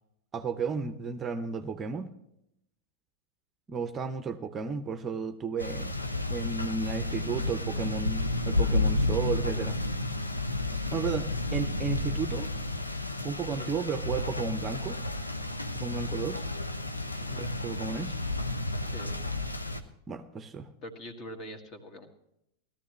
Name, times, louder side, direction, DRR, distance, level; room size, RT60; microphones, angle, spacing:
voice 1, 0.3-2.1 3.7-5.9 6.3-9.8 10.9-12.5 13.2-15.0 15.7-16.4 17.3-18.2 20.1-20.7, right 5 dB, 20° right, 9 dB, 0.7 m, -33 dB
sound 1, 5.6-19.8, left 2 dB, 85° left, 0.8 m, -31 dB
voice 2, 17.2-17.5 18.8-19.2 20.8-22.1, equal, 35° left, 6 dB, 1.8 m, -44 dB
18.0 x 13.0 x 3.1 m, 0.79 s
figure-of-eight pair, 90°, 0 cm